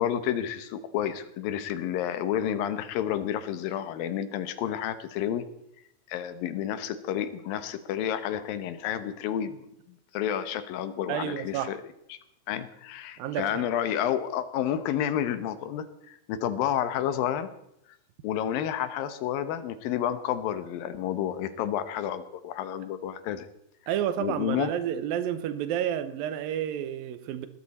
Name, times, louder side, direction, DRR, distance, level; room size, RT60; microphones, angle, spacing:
voice 1, 0.0-5.4 6.1-11.8 12.1-12.2 12.5-17.5 18.2-23.5 24.2-24.7, left 10 dB, 80° left, 2.7 m, -30 dB
voice 2, 11.1-11.7 13.2-13.6 23.9-27.5, right 10 dB, 85° right, 2.6 m, -30 dB
19.5 x 13.0 x 4.2 m
omnidirectional pair, 4.1 m